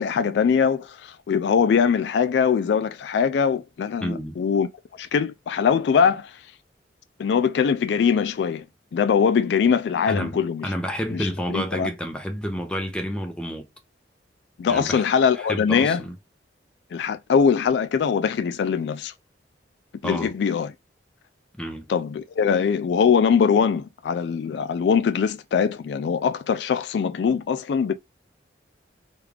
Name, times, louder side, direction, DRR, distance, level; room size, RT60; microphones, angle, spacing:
voice 1, 0.0-4.7 5.0-6.4 7.2-8.6 8.9-10.7 11.1-11.9 14.6-16.0 16.9-19.1 20.0-20.7 21.9-27.9, left 6 dB, 65° left, 0.3 m, -22 dB
voice 2, 4.0-4.4 10.1-13.7 14.7-15.0 15.3-16.1 20.0-20.3 21.6-21.9, equal, 5° left, 0.6 m, -29 dB
3.3 x 2.4 x 3.2 m
head